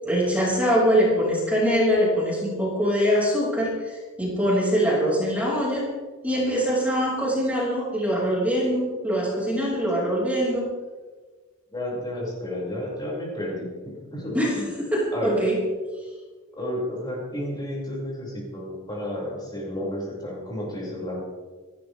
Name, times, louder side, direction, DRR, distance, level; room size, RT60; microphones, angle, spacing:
voice 1, 0.0-5.9 6.2-10.7 14.3-15.6, equal, 5° right, -5 dB, 5.9 m, -23 dB
voice 2, 11.7-14.7 15.1-15.4 16.5-21.2, left 1 dB, 20° left, -5 dB, 6.1 m, -31 dB
29.0 x 13.0 x 3.6 m, 1.4 s
head